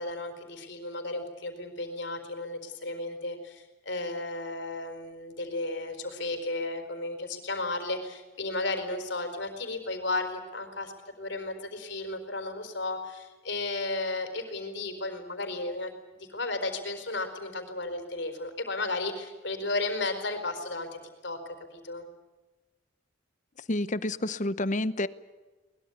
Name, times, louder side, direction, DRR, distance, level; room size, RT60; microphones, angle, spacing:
voice 1, 0.0-21.4 21.7-22.0, left 2 dB, 60° left, 7 dB, 4.4 m, -34 dB
voice 2, 23.7-25.1, left 1 dB, 40° left, 15 dB, 0.9 m, -29 dB
22.5 x 21.0 x 8.3 m, 1.2 s
head